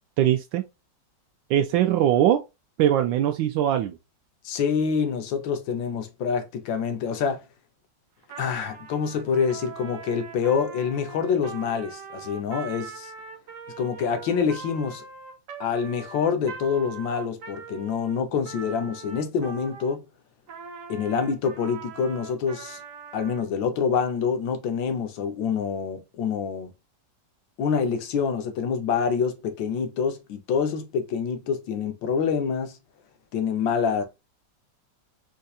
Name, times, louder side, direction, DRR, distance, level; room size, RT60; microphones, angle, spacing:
voice 1, 0.2-0.6 1.5-2.4 2.8-4.0, right 11 dB, 90° right, 1.3 m, -21 dB
voice 2, 4.4-7.4 8.4-13.1 13.8-15.0 15.6-20.0 20.9-22.8 23.1-26.7 27.6-32.8 33.3-34.0, left 6 dB, 85° left, 1.6 m, -26 dB
Trumpet, 8.2-20.0 20.5-23.5, right 5 dB, 55° right, 1.0 m, -42 dB
4.4 x 2.7 x 2.3 m
omnidirectional pair, 2.0 m